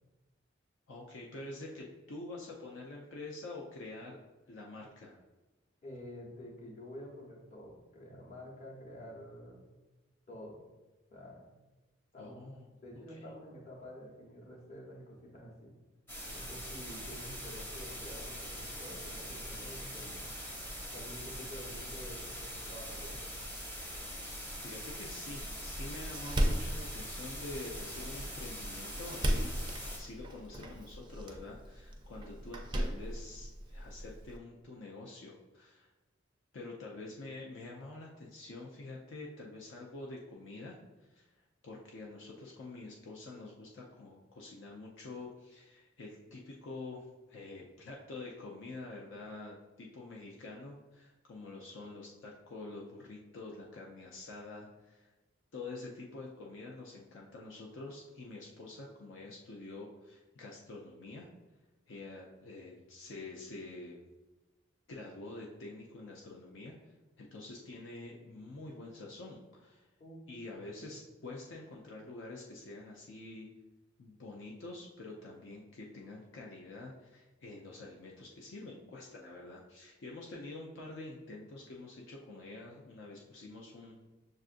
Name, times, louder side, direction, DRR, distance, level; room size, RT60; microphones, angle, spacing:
voice 1, 0.9-4.2 4.5-5.2 12.2-12.7 13.1-13.2 24.0-24.1 24.6-29.6 30.0-35.9 36.5-41.3 41.6-55.1 55.5-61.3 61.9-64.1 64.9-69.9 70.3-73.5 74.0-84.0, left 2 dB, 70° left, -2 dB, 0.5 m, -47 dB
voice 2, 5.8-9.6 10.3-10.6 11.1-11.5 12.1-12.5 12.8-15.7 16.3-20.2 20.9-23.2 70.0-70.2 70.6-70.9, equal, 35° left, -3 dB, 0.9 m, -49 dB
sound 1, 16.1-30.0, equal, 10° left, 0.7 m, -43 dB
Door, 25.4-34.4, equal, 25° right, 0.4 m, -37 dB
6.5 x 2.4 x 2.5 m, 1.1 s
head